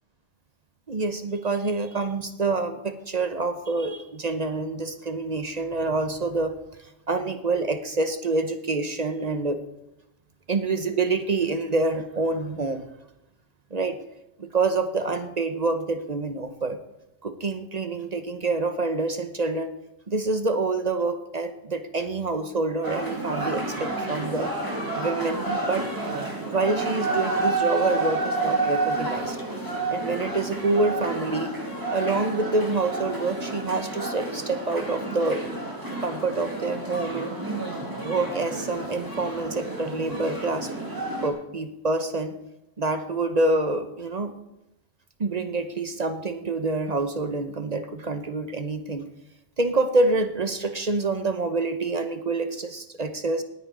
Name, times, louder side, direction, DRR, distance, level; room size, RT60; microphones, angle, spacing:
voice 1, 0.9-9.6 10.5-12.9 13.7-14.0 14.4-16.8 17.2-19.7 20.1-24.5 24.9-25.8 26.5-29.4 29.9-31.5 31.9-35.4 36.0-37.3 38.0-40.7 41.2-42.4 42.8-44.3 45.2-49.1 49.6-53.4, right 3 dB, 40° right, 8 dB, 0.8 m, -27 dB
sound 1, 22.8-41.3, right 2 dB, 15° right, 2.2 m, -30 dB
18.5 x 9.6 x 3.8 m, 0.89 s
omnidirectional pair, 1.2 m